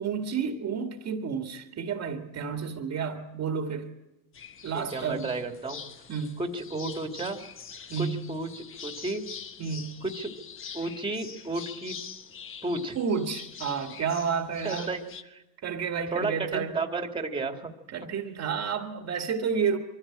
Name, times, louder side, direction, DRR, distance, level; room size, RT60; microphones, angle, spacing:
voice 1, 0.0-3.9 4.6-5.3 6.1-6.4 7.9-8.2 9.6-10.0 13.0-14.9 15.6-16.7 17.9-19.8, right 6 dB, 35° right, 5 dB, 2.0 m, -30 dB
sound 1, 4.3-15.2, left 7 dB, 25° left, 1.2 m, -44 dB
voice 2, 4.7-5.8 6.4-7.4 8.0-9.2 10.0-10.3 10.7-12.0 12.6-13.0 14.6-15.0 15.3-15.4 16.1-17.7, right 2 dB, 10° right, 5 dB, 2.2 m, -32 dB
23.5 x 15.0 x 8.8 m, 0.99 s
supercardioid pair, 110°, 47 cm